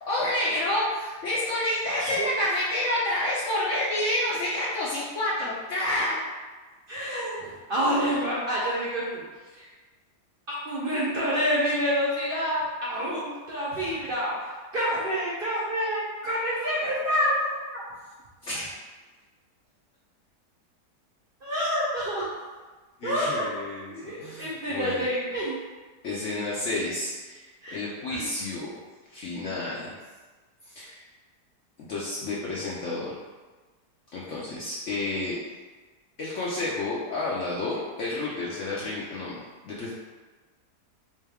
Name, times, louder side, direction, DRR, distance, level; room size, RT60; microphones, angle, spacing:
voice 1, 0.1-6.2 13.7-13.8 18.4-18.7 23.0-25.1 26.0-28.7 29.1-30.0 30.7-31.0 31.8-33.1 34.1-35.4 36.2-39.9, left 1 dB, 65° left, -6 dB, 0.8 m, -29 dB
voice 2, 2.0-2.3 6.9-9.2 9.5-9.7 10.6-17.8 21.4-22.3 23.0-23.4 23.9-25.6 27.6-27.8, equal, 45° right, -8 dB, 0.7 m, -28 dB
3.4 x 3.1 x 3.4 m, 1.3 s
omnidirectional pair, 1.8 m